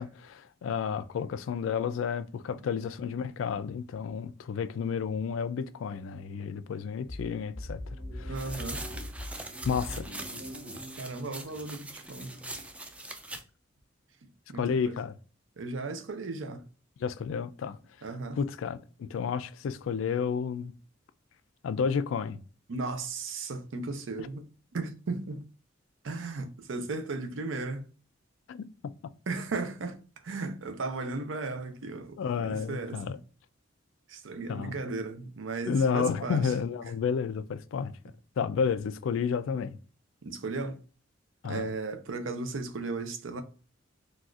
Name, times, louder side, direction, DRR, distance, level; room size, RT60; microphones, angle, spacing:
voice 1, 0.0-7.8 8.1-8.4 9.6-10.1 14.5-15.1 17.0-17.8 18.4-20.7 21.6-22.4 28.5-28.6 32.2-33.2 34.5-34.8 35.6-37.9 38.4-39.8 41.4-41.7, left 6 dB, 80° left, 0.3 m, -31 dB
sound 1, 7.0-12.7, left 1 dB, 55° right, 1.5 m, -42 dB
voice 2, 8.3-8.9 11.0-12.3 14.5-14.9 15.6-16.6 18.0-18.4 22.7-24.5 24.7-25.4 26.0-27.8 29.3-30.0 30.2-33.2 34.1-36.5 40.2-40.8 41.5-43.4, right 3 dB, 80° right, 0.5 m, -35 dB
sound 2, 8.4-13.4, right 2 dB, 5° right, 0.3 m, -42 dB
4.0 x 2.4 x 2.3 m
head